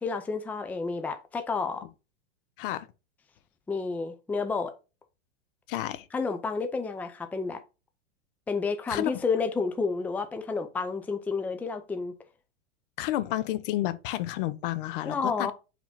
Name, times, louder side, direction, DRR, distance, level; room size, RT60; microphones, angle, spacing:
voice 1, 0.0-1.8 3.7-4.7 6.1-7.6 8.5-12.1 15.1-15.5, left 4 dB, 5° left, 0.5 m, -30 dB
voice 2, 5.7-6.1 8.9-9.1 13.0-15.5, left 14 dB, 55° left, 0.7 m, -30 dB
4.8 x 3.6 x 5.5 m
hypercardioid pair, 115°, 31 cm